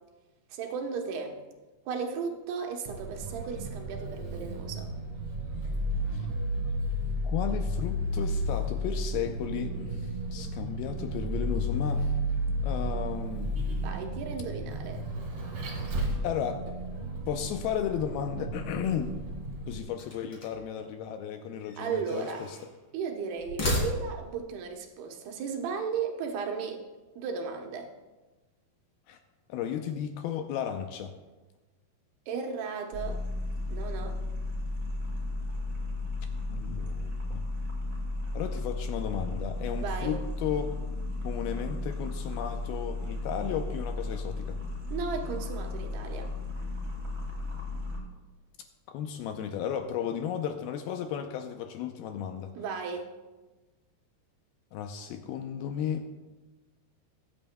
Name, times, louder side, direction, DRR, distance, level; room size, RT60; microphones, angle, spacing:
voice 1, 0.5-1.4 1.9-4.9 13.8-15.0 21.8-22.4 22.9-26.8 27.2-27.9 32.3-33.2 33.7-34.2 39.7-40.2 44.9-46.3 52.5-53.1, right 6 dB, 75° right, 2 dB, 3.0 m, -35 dB
Vehicle, 2.9-19.8, equal, 45° right, 3.3 m, -33 dB
voice 2, 7.2-12.2 12.6-13.8 16.2-16.6 17.3-19.2 19.7-22.6 29.1-29.2 29.5-31.1 36.5-37.4 38.3-44.6 48.9-52.5 54.7-56.1, left 9 dB, 80° left, 6 dB, 2.3 m, -34 dB
sound 1, 19.9-20.7 21.6-22.7 23.4-24.4, left 1 dB, 30° left, 2.8 m, -34 dB
sound 2, 32.9-48.0, left 2 dB, 25° right, 2.7 m, -34 dB
22.0 x 8.9 x 2.2 m, 1.2 s
omnidirectional pair, 4.8 m